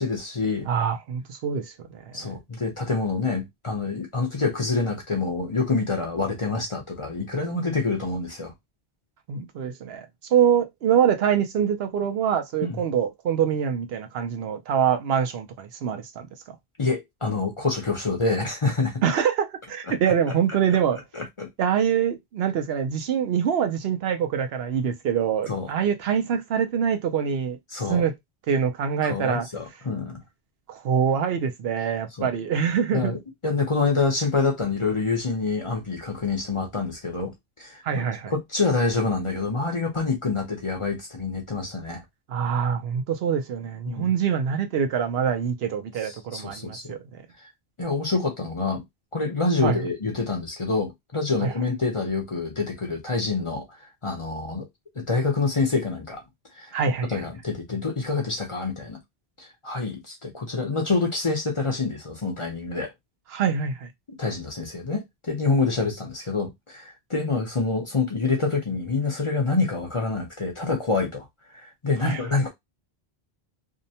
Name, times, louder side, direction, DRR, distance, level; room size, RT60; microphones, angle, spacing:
voice 1, 0.0-0.7 2.1-8.5 12.6-12.8 16.8-19.0 20.3-20.4 21.1-21.5 25.5-25.7 27.7-28.1 29.0-30.2 32.2-32.3 32.9-42.0 43.9-44.1 46.0-46.9 47.8-48.8 49.1-53.7 54.0-54.7 55.0-56.2 56.6-56.7 57.1-59.0 59.4-62.9 64.2-71.3 71.5-72.5, left 3 dB, 35° left, 0.7 m, -27 dB
voice 2, 0.6-2.3 9.3-16.3 19.0-21.0 21.6-27.6 27.9-28.1 28.5-29.5 30.7-33.1 37.8-38.3 42.3-47.2 49.6-49.8 51.4-51.5 56.7-57.2 63.3-63.9 72.0-72.2, right 8 dB, 75° right, 0.8 m, -25 dB
2.7 x 2.1 x 2.7 m
omnidirectional pair, 1.0 m